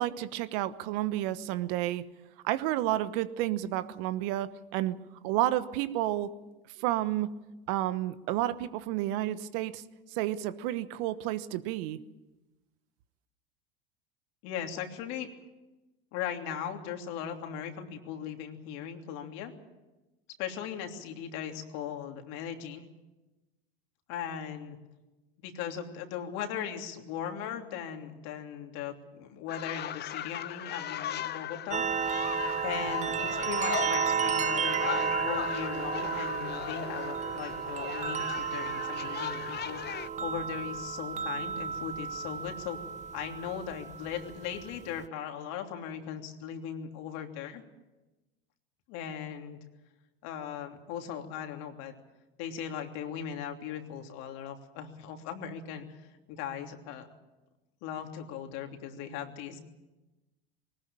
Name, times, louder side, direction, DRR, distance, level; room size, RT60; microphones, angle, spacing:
voice 1, 0.0-2.0 2.4-5.0 5.2-6.3 6.8-7.3 7.7-9.8 10.1-12.0, right 14 dB, 60° right, 14 dB, 1.2 m, -31 dB
voice 2, 14.4-15.3 16.1-19.5 20.4-22.8 24.1-24.8 25.4-31.8 32.6-42.8 43.1-47.6 48.9-49.6 50.2-51.9 52.4-56.0 56.3-57.1 57.8-59.6, left 8 dB, 60° left, 4 dB, 3.1 m, -38 dB
sound 1, 29.5-40.1, left 11 dB, 35° left, 0.9 m, -37 dB
sound 2, 31.7-45.1, right 7 dB, 25° right, 0.7 m, -33 dB
20.5 x 19.5 x 8.8 m, 1.1 s
hypercardioid pair, 85°, 30 cm